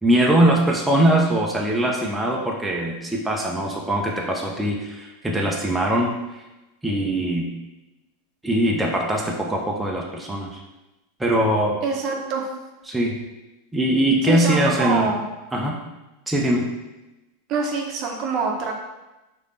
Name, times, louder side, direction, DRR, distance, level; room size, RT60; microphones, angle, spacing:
voice 1, 0.0-6.1 6.8-7.5 8.4-10.6 11.2-11.8 12.9-13.2 13.7-15.1 15.5-15.8 16.3-16.7, right 1 dB, 10° right, -2 dB, 0.7 m, -21 dB
voice 2, 11.8-12.5 14.2-15.3 17.5-18.7, right 4 dB, 45° right, 1 dB, 0.8 m, -25 dB
4.9 x 2.7 x 3.2 m, 1.0 s
hypercardioid pair, 95°, 0 cm